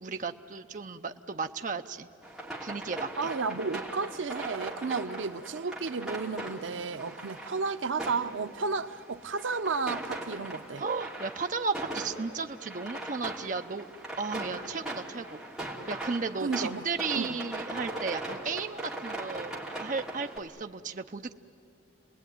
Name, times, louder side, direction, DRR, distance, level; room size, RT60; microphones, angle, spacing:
voice 1, 0.0-2.1 2.6-3.3 10.8-13.9 14.2-15.4 15.9-19.5 19.8-21.4, right 4 dB, 40° right, 0.6 m, -34 dB
sound 1, 2.2-20.4, right 1 dB, 5° right, 2.9 m, -40 dB
voice 2, 3.2-10.8 16.4-16.9 17.1-17.4, right 4 dB, 80° right, 0.6 m, -32 dB
29.5 x 20.0 x 9.4 m
head